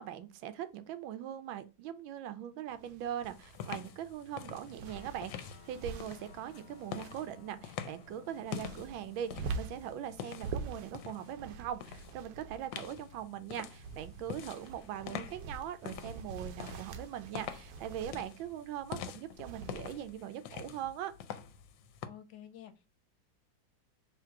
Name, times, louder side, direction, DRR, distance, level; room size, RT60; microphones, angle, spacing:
voice 1, 0.0-21.1, right 10 dB, 90° right, 1.4 m, -41 dB
sound 1, 2.7-20.2, right 4 dB, 70° right, 1.0 m, -46 dB
sound 2, 3.2-11.4 11.8-12.1 12.7-22.1, left 9 dB, 90° left, 1.4 m, -46 dB
sound 3, 4.8-16.7, left 7 dB, 50° left, 0.8 m, -60 dB
voice 2, 22.0-22.9, left 10 dB, 70° left, 1.2 m, -51 dB
3.7 x 2.9 x 4.5 m
omnidirectional pair, 2.1 m